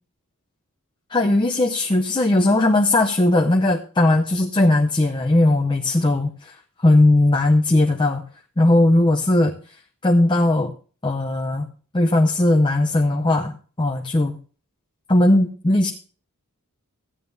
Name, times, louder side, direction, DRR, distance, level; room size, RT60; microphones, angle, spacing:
voice 1, 1.1-6.5 6.8-8.2 8.6-9.5 10.0-10.7 11.0-11.7 11.9-14.4 15.1-15.9, left 2 dB, 20° left, 2 dB, 0.6 m, -18 dB
15.0 x 9.1 x 2.7 m, 0.38 s
head